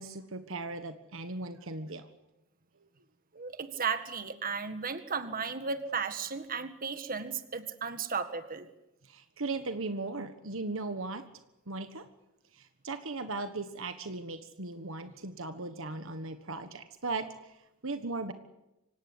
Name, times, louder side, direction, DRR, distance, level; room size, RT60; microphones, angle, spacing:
voice 1, 0.0-2.1 9.0-11.2 11.7-12.0 12.5-17.6 17.8-18.3, right 3 dB, 65° right, 9 dB, 1.5 m, -37 dB
voice 2, 3.3-8.7, right 5 dB, 45° right, 9 dB, 1.9 m, -35 dB
25.5 x 17.5 x 9.8 m, 0.93 s
head